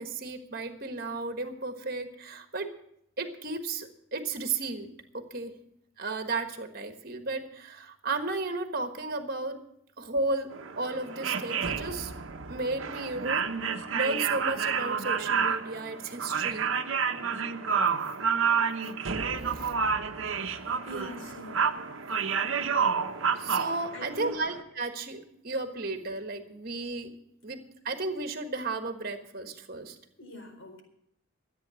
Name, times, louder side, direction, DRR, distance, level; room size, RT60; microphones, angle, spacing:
voice 1, 0.0-2.7 3.2-4.9 5.1-5.5 6.0-9.6 10.0-10.5 10.8-12.1 12.5-13.5 13.9-16.7 19.5-19.7 23.3-27.1 27.4-30.0, right 3 dB, 45° right, 6 dB, 1.4 m, -34 dB
sound 1, 10.5-24.6, right 6 dB, 70° right, 1.0 m, -30 dB
voice 2, 20.9-21.6 23.9-24.3 30.2-30.8, equal, 70° left, 2 dB, 4.4 m, -42 dB
14.0 x 8.9 x 7.6 m, 0.75 s
head